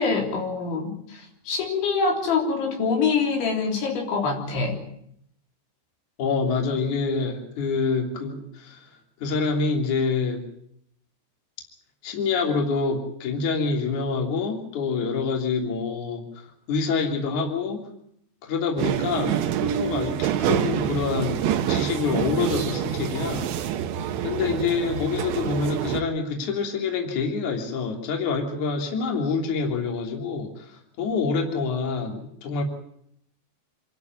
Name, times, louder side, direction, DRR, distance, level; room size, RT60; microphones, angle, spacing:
voice 1, 0.0-4.8, left 4 dB, 80° left, 1 dB, 6.0 m, -25 dB
voice 2, 6.2-8.9 9.2-10.4 12.0-17.9 18.4-23.5 24.2-32.6, left 4 dB, 45° left, 2 dB, 4.1 m, -26 dB
sound 1, 18.8-26.0, right 10 dB, 80° right, 3.5 m, -27 dB
27.0 x 13.0 x 9.6 m, 0.72 s
omnidirectional pair, 5.3 m